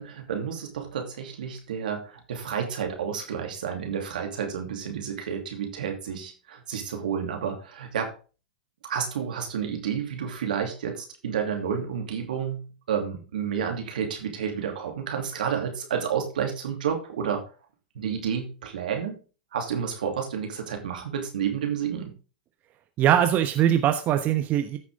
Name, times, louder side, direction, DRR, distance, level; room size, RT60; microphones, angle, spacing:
voice 1, 0.0-8.1 8.8-17.4 17.9-19.2 19.5-22.2, right 7 dB, 75° right, 4 dB, 2.7 m, -30 dB
voice 2, 23.0-24.8, right 10 dB, 40° right, 8 dB, 1.0 m, -21 dB
14.5 x 6.0 x 3.6 m, 0.34 s
hypercardioid pair, 105°, 5 cm